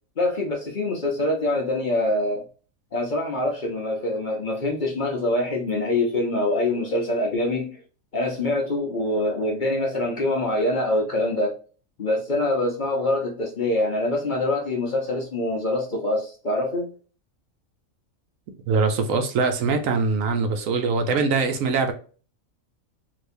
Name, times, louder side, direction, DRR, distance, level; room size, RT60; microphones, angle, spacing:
voice 1, 0.2-2.4 2.9-7.8 8.1-11.6 12.0-16.9, left 1 dB, 45° left, 0.7 m, -24 dB
voice 2, 18.7-21.9, right 4 dB, 75° right, 1.1 m, -22 dB
3.3 x 2.9 x 2.6 m
omnidirectional pair, 1.4 m